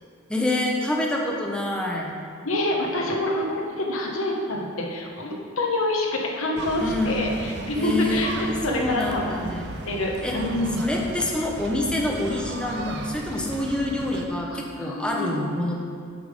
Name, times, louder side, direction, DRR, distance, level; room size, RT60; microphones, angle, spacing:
voice 1, 0.3-2.1 6.8-7.2 7.8-9.7 10.2-10.4 10.8-15.7, left 1 dB, 5° left, -1 dB, 0.7 m, -27 dB
voice 2, 2.4-9.5 9.9-10.8 14.5-15.4, left 1 dB, 65° left, 0 dB, 1.1 m, -27 dB
sound 1, 6.6-14.3, right 3 dB, 50° right, 0.5 m, -36 dB
7.2 x 5.5 x 5.1 m, 2.3 s
head